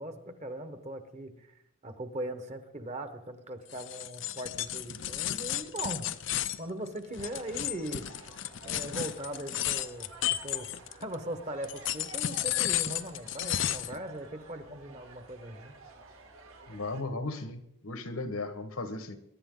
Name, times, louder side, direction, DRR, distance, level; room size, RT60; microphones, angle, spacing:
voice 1, 0.0-1.5 1.8-6.1 6.6-8.1 8.6-15.7, right 1 dB, 30° right, 9 dB, 1.3 m, -40 dB
sound 1, 3.7-11.1 11.6-14.0, left 12 dB, 60° left, 0.6 m, -33 dB
sound 2, 7.1-17.0, right 3 dB, 80° right, 2.6 m, -52 dB
voice 2, 16.7-19.2, left 2 dB, 85° left, 9 dB, 1.6 m, -36 dB
22.5 x 11.0 x 3.9 m, 0.78 s
head